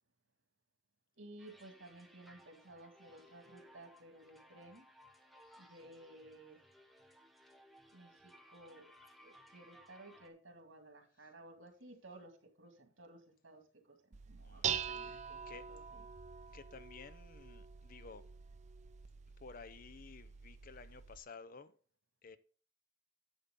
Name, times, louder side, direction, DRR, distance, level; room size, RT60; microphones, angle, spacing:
voice 1, 1.2-4.9 5.6-6.6 7.9-8.9 9.2-14.0 14.3-15.4 15.7-16.0, right 1 dB, 85° right, 2.2 m, -56 dB
sound 1, 1.4-10.3, equal, ahead, 0.9 m, -62 dB
Dishes pots and pans, 14.1-21.2, right 8 dB, 35° right, 0.6 m, -44 dB
voice 2, 14.4-15.7 16.5-18.3 19.4-21.8 22.2-22.4, left 5 dB, 45° left, 0.6 m, -54 dB
10.5 x 7.1 x 3.7 m
head